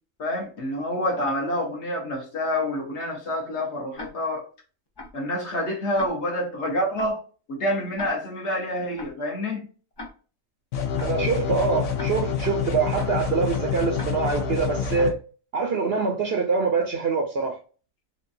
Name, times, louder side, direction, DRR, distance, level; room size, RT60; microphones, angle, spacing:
voice 1, 0.2-4.5 5.1-7.2 7.5-9.7, left 1 dB, 55° left, 1.4 m, -27 dB
Tick-tock, 4.0-4.1 5.0-5.1 6.0-6.1 7.0-7.1 8.0-8.1 9.0-9.1 10.0-10.1 11.0-11.1 12.0-12.1 13.0-13.1 14.0-14.1 15.0-15.1, left 2 dB, 35° left, 0.4 m, -38 dB
sound 1, 10.7-15.1, left 6 dB, 75° left, 1.2 m, -27 dB
voice 2, 11.0-15.1 15.5-17.6, right 4 dB, 60° right, 0.7 m, -24 dB
4.5 x 2.4 x 2.6 m
omnidirectional pair, 1.4 m